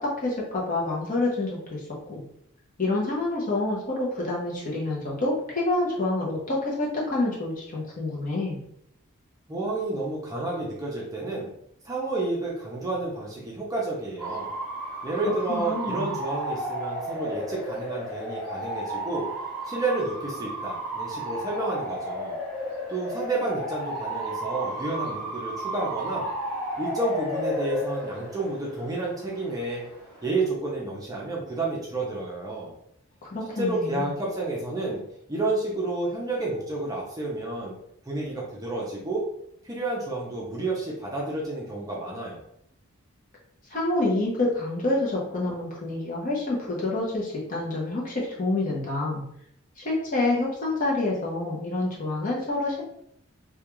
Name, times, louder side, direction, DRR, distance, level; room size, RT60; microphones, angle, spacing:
voice 1, 0.0-1.8 2.1-2.2 2.8-8.6 14.9-15.1 15.5-16.2 33.2-34.1 43.7-49.2 49.8-52.8, left 2 dB, 35° left, -3 dB, 0.6 m, -27 dB
voice 2, 9.5-11.5 11.8-14.5 15.0-19.3 19.6-22.4 22.9-26.3 26.8-29.9 30.2-32.7 33.6-35.0 35.3-37.7 38.1-39.2 39.6-42.4, right 2 dB, 15° right, -4 dB, 0.5 m, -30 dB
Bark / Motor vehicle (road) / Siren, 14.2-30.5, right 1 dB, 10° left, 0.8 m, -33 dB
2.3 x 2.3 x 2.9 m, 0.73 s
head